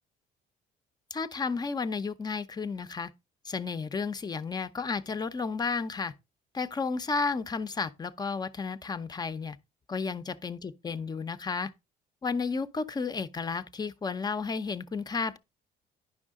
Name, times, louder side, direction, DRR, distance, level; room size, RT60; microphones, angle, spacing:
voice 1, 1.1-3.1 3.5-6.1 6.5-9.6 9.9-11.7 12.2-15.4, left 4 dB, 25° left, 0.6 m, -32 dB
10.5 x 5.4 x 3.6 m
cardioid pair, 110°, 17 cm